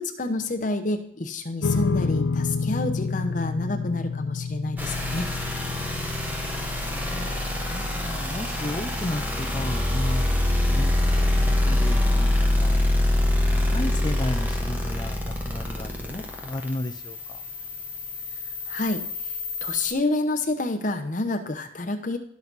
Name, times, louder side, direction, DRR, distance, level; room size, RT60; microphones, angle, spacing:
voice 1, 0.0-5.3 18.7-19.3 19.6-22.2, left 2 dB, 40° left, 5 dB, 0.8 m, -28 dB
sound 1, 1.6-14.1, left 4 dB, 90° left, 0.6 m, -32 dB
sound 2, 4.8-19.9, left 1 dB, 10° right, 1.0 m, -25 dB
voice 2, 6.0-7.3 7.7-13.0 13.5-17.4, left 1 dB, 20° left, 9 dB, 0.4 m, -34 dB
12.5 x 6.1 x 4.0 m, 0.66 s
head